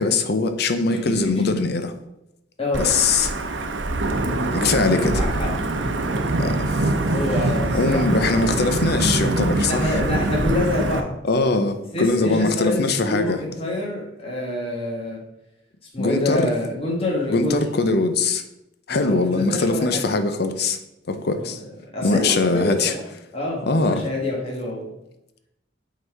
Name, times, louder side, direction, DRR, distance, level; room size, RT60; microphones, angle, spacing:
voice 1, 0.0-1.9 2.8-3.3 4.5-5.2 6.4-6.9 7.7-9.9 11.3-13.4 16.0-16.5 17.3-18.4 18.9-20.8 21.1-21.6 22.0-23.0 23.6-24.0, left 3 dB, 60° left, 8 dB, 0.7 m, -21 dB
voice 2, 0.9-1.5 2.6-2.9 4.9-5.5 6.3-6.4 7.1-8.5 9.7-11.2 11.9-15.2 15.9-17.6 18.9-20.0 21.4-21.5 21.9-23.0 23.3-24.9, left 2 dB, 30° left, -3 dB, 1.4 m, -26 dB
Wind / Thunder / Rain, 2.7-11.0, right 2 dB, 75° right, 0.7 m, -23 dB
8.0 x 4.0 x 4.7 m, 0.87 s
head